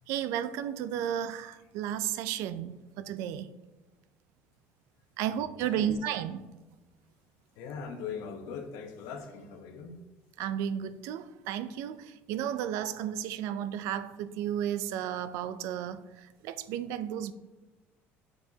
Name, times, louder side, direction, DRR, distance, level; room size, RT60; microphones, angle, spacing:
voice 1, 0.1-3.5 5.2-6.4 10.4-17.3, right 10 dB, 70° right, 0.4 m, -33 dB
voice 2, 7.6-10.0, left 6 dB, 75° left, 0.9 m, -40 dB
7.7 x 4.8 x 2.8 m
cardioid pair, 175°, 5 cm